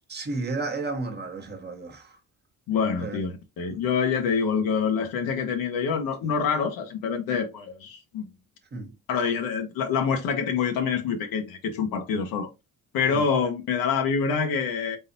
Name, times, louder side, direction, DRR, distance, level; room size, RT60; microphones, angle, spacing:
voice 1, 0.1-2.1 3.0-3.2 3.7-3.8 6.2-6.3 8.7-8.9 13.1-13.3, right 3 dB, 30° right, 1.0 m, -33 dB
voice 2, 2.7-8.3 9.1-12.5 12.9-15.0, left 6 dB, 90° left, 1.0 m, -26 dB
4.0 x 3.7 x 2.6 m
cardioid pair, 135°, 34 cm